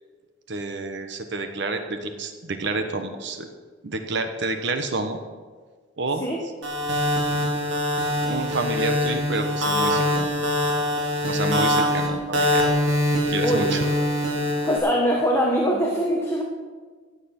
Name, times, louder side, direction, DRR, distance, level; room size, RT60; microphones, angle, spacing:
voice 1, 0.5-3.5 3.8-5.2 6.0-6.2 8.3-10.3 11.3-12.7 13.3-13.9, right 3 dB, 65° right, 7 dB, 1.2 m, -29 dB
sound 1, 6.6-14.8, left 1 dB, 85° right, 3.1 m, -23 dB
voice 2, 13.1-13.9 14.6-16.4, equal, 15° left, -1 dB, 1.5 m, -23 dB
15.0 x 9.4 x 6.0 m, 1.5 s
head